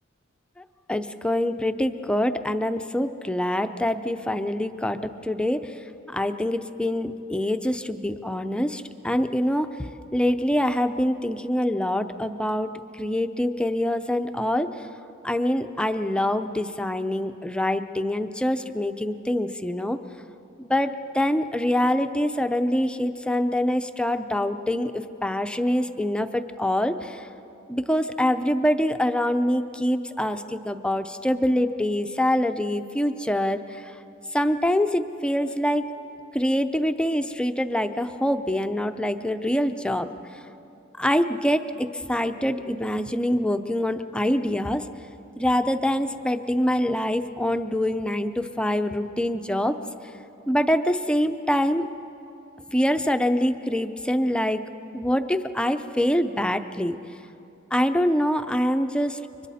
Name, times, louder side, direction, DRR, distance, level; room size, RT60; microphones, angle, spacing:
voice 1, 0.9-5.7 6.1-9.7 10.1-14.7 15.2-20.0 20.6-27.3 27.7-33.6 34.3-35.8 36.3-40.1 41.0-44.8 45.4-49.8 50.5-51.9 52.7-54.6 54.9-57.0 57.7-59.2, left 1 dB, 5° left, 8 dB, 0.6 m, -25 dB
30.0 x 24.5 x 4.2 m, 2.8 s
head